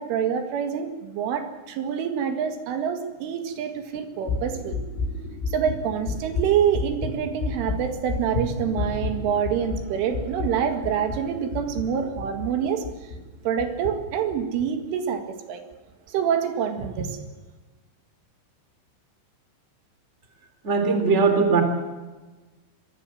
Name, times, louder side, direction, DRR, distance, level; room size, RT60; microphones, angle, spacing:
voice 1, 0.0-4.8 5.5-13.1 13.5-15.2 15.5-15.6 16.1-17.2, right 8 dB, 75° right, 7 dB, 4.4 m, -26 dB
sound 1, 4.3-13.2 13.6-13.9 14.3-14.6, left 3 dB, 85° left, 5.8 m, -31 dB
voice 2, 20.6-21.6, right 4 dB, 15° right, 6 dB, 2.9 m, -20 dB
25.0 x 21.0 x 7.6 m, 1.2 s
omnidirectional pair, 5.7 m